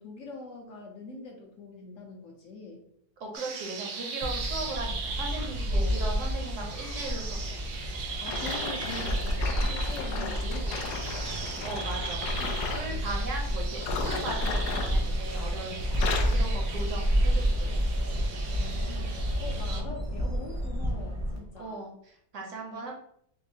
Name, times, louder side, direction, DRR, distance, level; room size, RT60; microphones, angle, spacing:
voice 1, 0.0-2.8 5.7-6.2 8.2-11.7 12.8-13.2 16.1-16.2 18.5-21.9 22.6-22.8, left 2 dB, 60° left, 1 dB, 0.9 m, -44 dB
voice 2, 3.2-7.6 10.1-10.4 11.6-15.7 16.3-17.8 21.6-22.9, right 2 dB, 60° right, 0 dB, 0.9 m, -38 dB
sound 1, 3.3-19.8, right 5 dB, 90° right, 1.2 m, -39 dB
sound 2, 4.2-21.4, equal, 20° right, 0.5 m, -30 dB
sound 3, 8.2-12.9 13.7-15.5 15.8-16.5 17.1-17.3 17.9-18.0, left 5 dB, 90° left, 1.1 m, -36 dB
5.8 x 2.0 x 2.7 m, 0.69 s
omnidirectional pair, 1.7 m